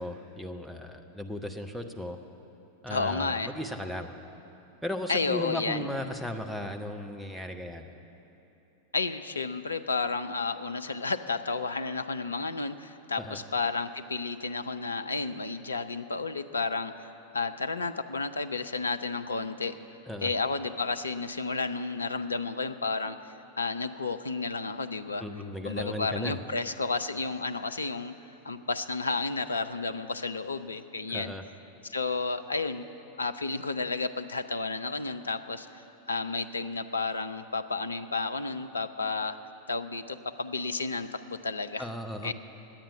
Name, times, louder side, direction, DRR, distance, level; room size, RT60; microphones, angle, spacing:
voice 1, 0.0-2.2 2.8-4.1 4.8-7.9 13.2-13.4 20.1-20.3 25.2-26.4 31.1-31.4 41.8-42.3, left 1 dB, ahead, 3 dB, 0.8 m, -36 dB
voice 2, 2.9-3.5 5.1-5.9 8.9-19.7 20.2-23.2 23.6-25.2 25.6-28.1 28.4-31.3 31.9-32.8 33.2-39.4 39.7-41.9 42.2-42.3, left 4 dB, 75° left, 9 dB, 0.4 m, -32 dB
10.0 x 9.0 x 9.4 m, 3.0 s
figure-of-eight pair, 90°, 0 cm